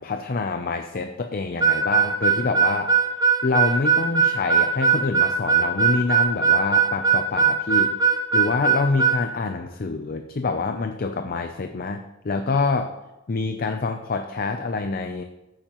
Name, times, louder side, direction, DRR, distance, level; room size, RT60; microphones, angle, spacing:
voice 1, 0.0-2.9 3.4-7.9 8.3-12.9 13.3-15.2, left 3 dB, 45° left, 6 dB, 0.5 m, -26 dB
Harmonica, 1.6-9.2, right 6 dB, 20° right, 0.8 m, -19 dB
14.5 x 8.8 x 3.0 m, 1.0 s
head